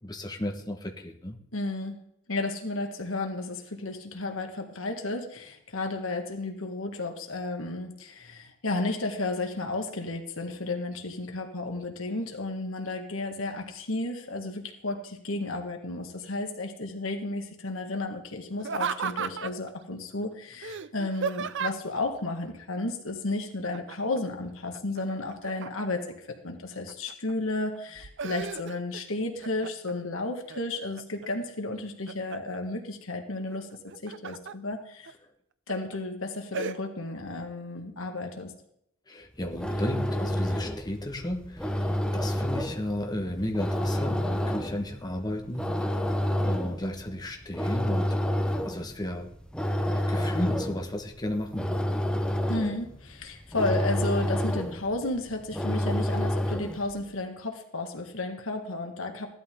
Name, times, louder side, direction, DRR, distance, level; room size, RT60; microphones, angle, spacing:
voice 1, 0.0-1.4 39.1-46.0 46.4-48.2 48.6-49.3 49.9-52.1, left 1 dB, 20° left, 2 dB, 1.5 m, -34 dB
voice 2, 1.5-2.0 2.3-35.1 35.7-38.5 52.5-59.3, left 2 dB, 75° left, 4 dB, 1.8 m, -33 dB
Laughter, 18.6-19.7 20.6-22.0 23.7-24.2 24.5-26.1 26.7-27.3 27.7-29.0 29.4-30.0 30.5-31.3 31.7-32.6 33.7-34.5 35.1-35.2 35.7-36.0 36.5-36.8, right 6 dB, 60° right, 0.6 m, -35 dB
sound 1, 39.3-56.9, equal, 5° left, 1.0 m, -30 dB
16.0 x 12.0 x 3.8 m, 0.74 s
head